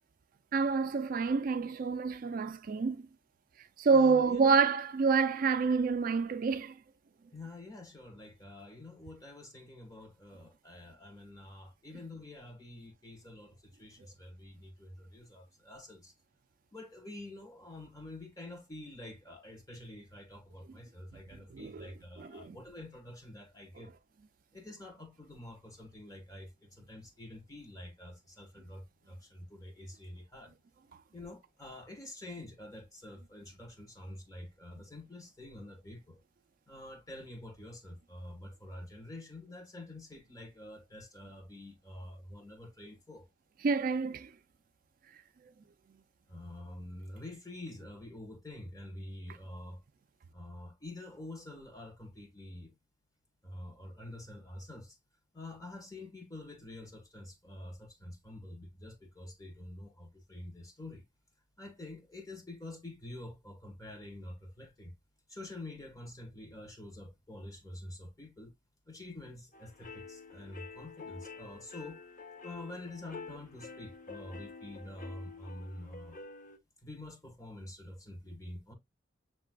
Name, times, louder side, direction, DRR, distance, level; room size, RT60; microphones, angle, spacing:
voice 1, 0.5-3.1 3.8-6.8 21.5-21.9 22.2-22.6 43.6-44.3, right 5 dB, 50° right, 0.4 m, -28 dB
voice 2, 3.9-4.6 7.3-16.1 16.7-23.9 24.5-30.5 31.1-36.2 36.7-43.3 46.3-49.8 50.3-52.7 53.4-55.0 55.3-61.0 61.6-64.9 65.3-68.5 68.9-72.0 72.4-76.2 76.8-78.7, left 1 dB, 20° left, 1.7 m, -47 dB
sound 1, 69.5-76.6, left 4 dB, 45° left, 1.0 m, -48 dB
7.1 x 3.2 x 2.2 m
head